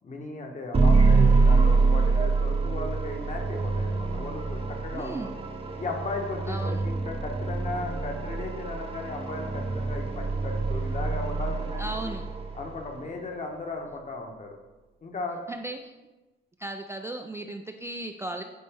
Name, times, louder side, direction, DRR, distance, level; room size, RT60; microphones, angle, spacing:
voice 1, 0.0-5.3 5.8-12.2 12.5-14.6 15.0-15.4, left 3 dB, 40° left, 2 dB, 1.1 m, -36 dB
sound 1, 0.7-12.9, right 4 dB, 30° right, 0.9 m, -25 dB
voice 2, 4.9-5.3 6.5-6.8 11.8-12.2 15.5-15.9 16.6-18.4, right 1 dB, 15° right, 4 dB, 0.3 m, -36 dB
9.4 x 3.3 x 3.4 m, 1.1 s
cardioid pair, 90°, 20 cm